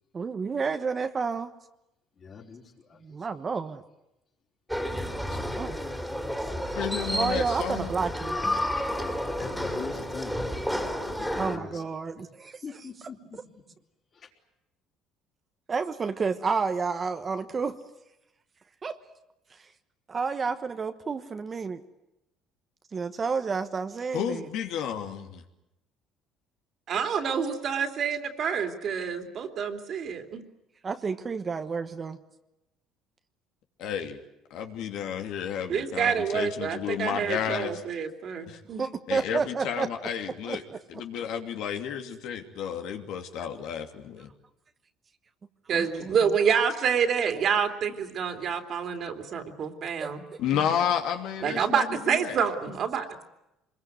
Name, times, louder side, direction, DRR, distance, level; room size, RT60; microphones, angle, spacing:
voice 1, 0.1-1.5 3.0-3.8 5.6-5.8 7.1-8.4 11.4-12.6 15.7-17.8 18.8-19.0 20.1-21.8 22.9-24.5 30.8-32.2 38.8-39.9 40.5-40.6 45.7-46.3 50.0-50.4, right 5 dB, 30° right, 9 dB, 1.2 m, -30 dB
voice 2, 2.2-3.3 5.2-5.6 9.4-10.4 11.0-11.8 12.6-13.6 14.1-14.3, left 5 dB, 40° left, 1 dB, 4.6 m, -42 dB
sound 1, 4.7-11.6, equal, ahead, 3.0 m, -31 dB
voice 3, 6.7-7.9 24.1-25.4 33.8-34.2 34.5-37.8 38.5-38.6 39.1-40.6 40.9-44.3 50.4-52.4, left 8 dB, 70° left, 5 dB, 2.8 m, -31 dB
voice 4, 26.9-30.4 35.7-38.9 45.7-49.1 49.6-50.2 51.4-53.2, right 7 dB, 50° right, 6 dB, 3.0 m, -27 dB
25.0 x 22.0 x 9.4 m, 0.89 s
cardioid pair, 120°, 0 cm